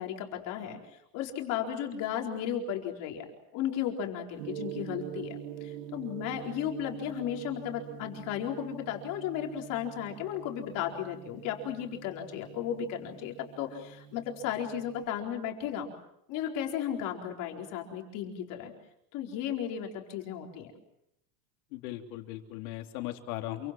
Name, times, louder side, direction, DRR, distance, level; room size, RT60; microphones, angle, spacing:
voice 1, 0.0-3.3 3.5-15.9 16.3-18.7 19.1-20.7, left 9 dB, 40° left, 2 dB, 4.4 m, -35 dB
Gong, 4.4-15.0, right 10 dB, 60° right, 3.5 m, -45 dB
voice 2, 21.7-23.7, left 14 dB, 60° left, 4 dB, 3.3 m, -38 dB
28.5 x 24.0 x 7.6 m, 0.79 s
supercardioid pair, 175°, 50 cm